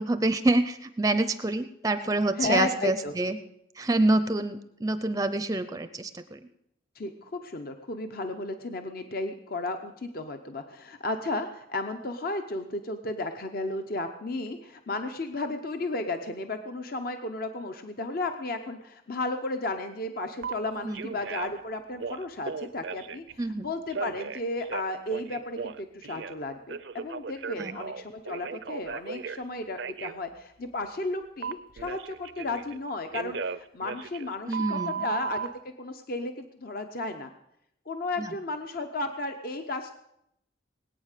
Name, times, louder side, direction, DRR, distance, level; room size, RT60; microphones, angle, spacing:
voice 1, 0.0-3.4 3.8-6.4 20.8-21.1 23.4-23.7 27.6-27.8 34.5-35.1 38.2-38.3, right 2 dB, 20° right, 11 dB, 0.5 m, -27 dB
voice 2, 2.4-3.1 6.9-37.3 37.9-39.9, left 2 dB, 50° left, 6 dB, 0.8 m, -34 dB
Telephone, 20.4-20.5 20.9-21.6 21.9-23.3 23.9-26.4 26.7-29.4 29.8-30.1 31.4-32.8 33.1-35.5, right 6 dB, 65° right, 0.5 m, -36 dB
20.5 x 9.0 x 6.6 m, 0.80 s
head